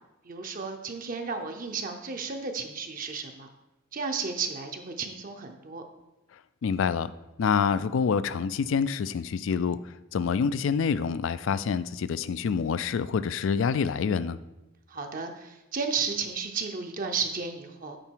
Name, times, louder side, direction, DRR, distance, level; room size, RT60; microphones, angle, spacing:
voice 1, 0.2-3.5 3.9-5.8 14.9-18.0, right 5 dB, 40° right, 4 dB, 0.6 m, -33 dB
voice 2, 6.6-7.1 7.4-9.8 10.1-14.4, left 6 dB, 65° left, 15 dB, 0.3 m, -27 dB
8.9 x 4.9 x 4.6 m, 0.97 s
head